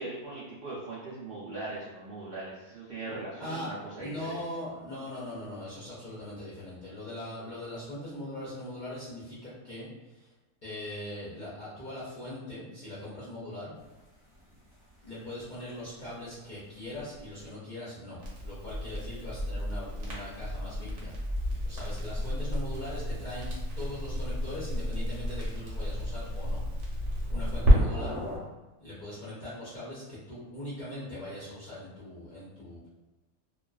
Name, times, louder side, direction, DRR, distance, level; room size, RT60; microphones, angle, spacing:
voice 1, 0.0-4.4, right 2 dB, 80° right, -6 dB, 0.5 m, -40 dB
voice 2, 3.4-3.7 4.0-10.3 10.6-13.7 15.0-21.1 21.6-26.6 27.3-28.2 28.8-32.9, left 1 dB, 50° left, -10 dB, 0.6 m, -41 dB
sound 1, 13.7-17.5 19.9-28.4, left 1 dB, ahead, 1.0 m, -49 dB
Crackle, 18.2-27.8, equal, 60° right, 0.9 m, -30 dB
2.3 x 2.3 x 2.3 m, 1.1 s
omnidirectional pair, 1.6 m